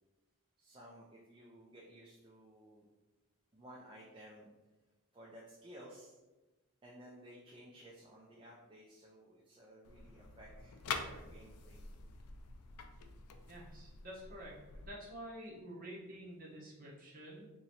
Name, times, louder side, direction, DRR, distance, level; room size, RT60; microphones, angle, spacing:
voice 1, 0.6-2.9 3.5-4.5 5.1-6.2 6.8-12.1, right 1 dB, 25° right, -4 dB, 0.4 m, -56 dB
sound 1, 9.8-14.9, left 5 dB, 85° left, 0.4 m, -46 dB
voice 2, 13.5-17.5, equal, 40° right, -5 dB, 1.0 m, -49 dB
3.0 x 2.7 x 4.1 m, 1.1 s
head